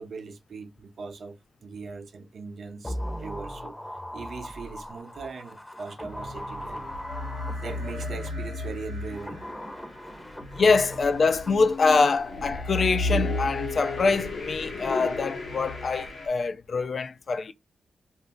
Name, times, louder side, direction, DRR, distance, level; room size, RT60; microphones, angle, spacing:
voice 1, 0.0-3.7 4.1-7.0 7.5-10.5, right 4 dB, 65° right, 0.6 m, -40 dB
sound 1, 2.8-8.3 8.9-12.2 12.4-12.5, equal, 15° left, 0.8 m, -39 dB
sound 2, 6.1-16.3, left 2 dB, 75° left, 1.0 m, -34 dB
voice 2, 10.5-17.5, left 4 dB, 60° left, 0.4 m, -24 dB
2.6 x 2.0 x 3.6 m
supercardioid pair, 50°, 0 cm